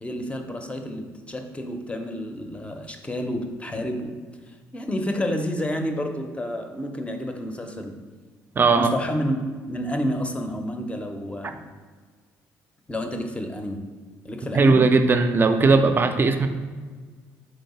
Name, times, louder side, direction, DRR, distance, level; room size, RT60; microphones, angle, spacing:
voice 1, 0.0-4.1 4.5-8.0 8.7-9.4 9.7-11.7 12.9-13.8 14.2-14.8, equal, 15° left, 5 dB, 0.6 m, -29 dB
voice 2, 8.5-8.9 14.5-16.5, right 4 dB, 30° right, 8 dB, 0.4 m, -18 dB
3.8 x 3.2 x 4.2 m, 1.5 s
supercardioid pair, 80°, 7 cm